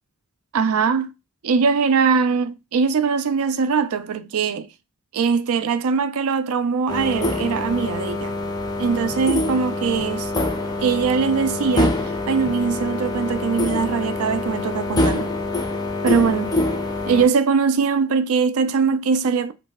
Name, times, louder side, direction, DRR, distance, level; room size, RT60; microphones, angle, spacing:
voice 1, 0.5-1.1 1.4-4.7 5.1-8.3 8.8-10.3 10.8-12.0 12.3-15.3 16.0-16.6 17.1-19.5, right 5 dB, 70° right, 0.4 m, -21 dB
sound 1, 6.9-17.3, left 2 dB, 15° left, 0.5 m, -25 dB
3.1 x 2.6 x 3.5 m
head